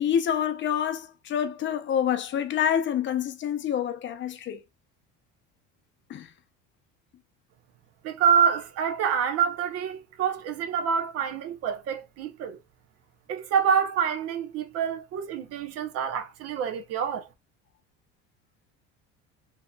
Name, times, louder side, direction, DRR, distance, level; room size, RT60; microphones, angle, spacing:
voice 1, 0.0-4.6 6.1-6.3, left 9 dB, 40° left, 0.7 m, -27 dB
voice 2, 8.0-12.6 13.3-17.3, right 7 dB, 55° right, 1.0 m, -26 dB
3.8 x 2.9 x 2.2 m
supercardioid pair, 105°, 29 cm